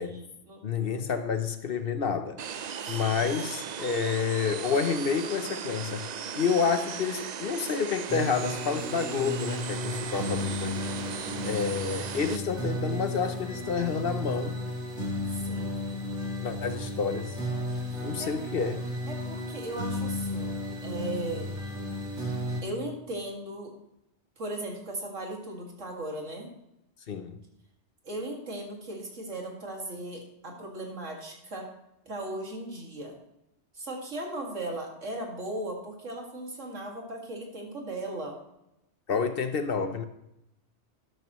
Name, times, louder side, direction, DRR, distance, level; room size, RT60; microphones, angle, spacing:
voice 1, 0.0-0.6 2.8-3.3 11.1-11.7 15.3-15.8 17.9-18.3 19.1-21.5 22.6-23.7 24.4-26.5 28.0-31.7 32.0-33.2 33.7-38.4, right 1 dB, 85° right, 2.6 m, -37 dB
voice 2, 0.6-2.4 2.9-6.0 6.3-10.8 11.4-14.6 16.4-17.4 18.0-18.8 27.1-27.4 39.1-40.0, left 5 dB, 55° left, 0.9 m, -29 dB
sound 1, 2.4-12.4, right 7 dB, 50° right, 0.5 m, -37 dB
sound 2, 8.1-22.6, left 1 dB, 70° right, 2.9 m, -34 dB
12.5 x 12.0 x 3.1 m
omnidirectional pair, 1.2 m